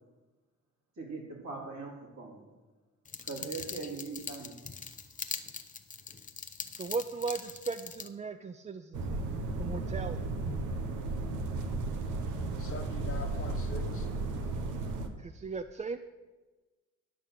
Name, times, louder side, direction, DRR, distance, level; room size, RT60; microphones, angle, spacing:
voice 1, 1.0-2.4 3.2-4.6, right 4 dB, 65° right, -2 dB, 3.6 m, -41 dB
sound 1, 3.0-8.1, left 5 dB, 25° left, 0.8 m, -42 dB
voice 2, 6.7-9.2 9.6-10.2 15.2-16.0, right 4 dB, 25° right, 10 dB, 0.4 m, -37 dB
sound 2, 8.9-15.1, right 3 dB, 80° right, 1.1 m, -34 dB
voice 3, 12.3-14.2 14.5-15.0, left 3 dB, 45° left, 5 dB, 1.7 m, -45 dB
11.0 x 6.5 x 5.9 m, 1.2 s
cardioid pair, 90°, 30 cm